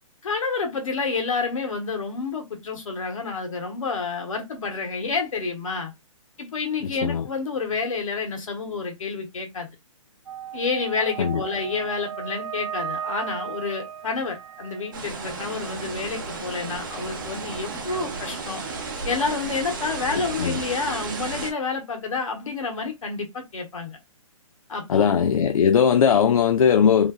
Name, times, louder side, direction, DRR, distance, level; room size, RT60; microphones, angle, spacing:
voice 1, 0.2-5.9 6.4-9.7 10.5-18.6 19.1-24.0 24.7-25.1, left 4 dB, 70° left, 1.1 m, -29 dB
voice 2, 6.8-7.3 11.2-11.4 20.4-20.6 24.9-27.1, left 7 dB, 90° left, 0.4 m, -19 dB
sound 1, 10.3-19.0, right 9 dB, 70° right, 0.4 m, -37 dB
sound 2, 14.9-21.5, right 4 dB, 40° right, 0.7 m, -33 dB
3.2 x 2.2 x 2.3 m
hypercardioid pair, 180°, 17 cm